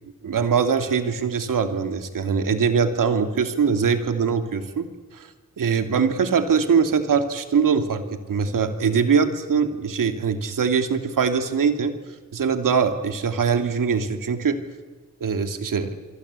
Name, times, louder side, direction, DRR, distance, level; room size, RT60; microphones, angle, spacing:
voice 1, 0.2-4.9 5.1-5.3 5.6-8.0 8.3-11.9 12.3-14.6 15.2-15.9, right 6 dB, 80° right, 7 dB, 2.6 m, -22 dB
27.0 x 23.5 x 8.3 m, 1.3 s
cardioid pair, 55°, 32 cm